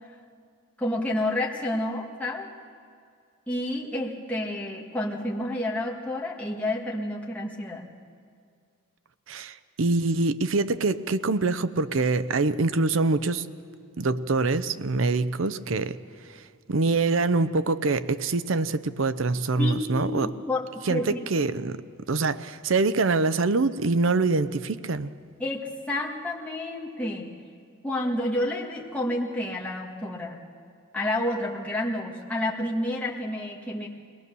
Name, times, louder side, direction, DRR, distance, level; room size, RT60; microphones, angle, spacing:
voice 1, 0.8-2.5 3.5-7.9 19.6-21.2 25.4-27.3 27.8-30.4 30.9-33.9, left 1 dB, 5° left, -3 dB, 1.7 m, -29 dB
voice 2, 9.3-13.5 14.0-16.0 16.7-20.3 20.8-21.8 22.1-25.1, right 3 dB, 65° right, 14 dB, 0.6 m, -25 dB
22.0 x 19.0 x 6.9 m, 2.2 s
head